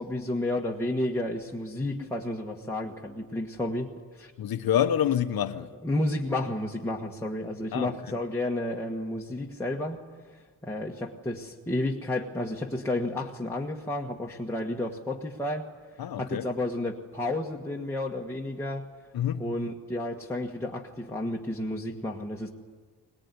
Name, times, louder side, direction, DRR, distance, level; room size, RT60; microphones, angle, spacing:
voice 1, 0.0-4.3 5.8-10.0 10.6-15.7 16.2-18.8 19.4-22.5, left 1 dB, 5° left, 1.4 m, -31 dB
voice 2, 4.4-5.7 7.7-8.2 16.0-16.5 19.1-19.5, left 10 dB, 60° left, 1.2 m, -27 dB
22.5 x 20.0 x 9.7 m
wide cardioid pair, 145°, 39 cm